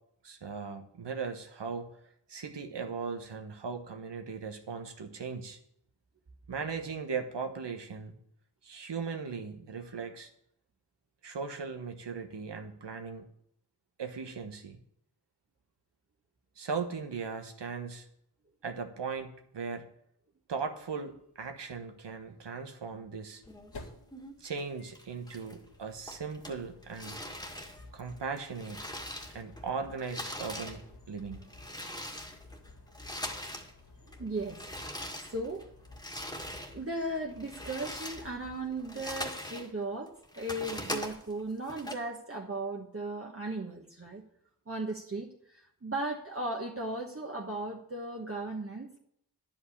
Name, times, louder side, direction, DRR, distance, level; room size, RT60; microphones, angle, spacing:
voice 1, 0.2-1.9 2.3-5.6 6.5-8.1 8.6-10.3 11.2-13.2 14.0-14.8 16.6-18.1 18.6-19.9 20.5-23.4 24.4-27.2 27.9-28.8 29.3-30.8 31.1-31.4, right 5 dB, 85° right, 6 dB, 1.3 m, -38 dB
sound 1, 20.6-20.7 20.9-21.0 22.9-39.2, left 3 dB, 70° left, 2.2 m, -54 dB
sound 2, 23.5-24.6 25.0-25.8 26.1-29.7 29.9-33.7 34.0-36.8 37.2-39.7 40.1-41.9, equal, 10° left, 1.8 m, -42 dB
voice 2, 34.1-34.9 35.2-35.6 36.7-44.2 44.7-49.0, right 2 dB, 35° right, -1 dB, 1.3 m, -37 dB
10.5 x 5.3 x 8.4 m, 0.72 s
cardioid pair, 50°, 41 cm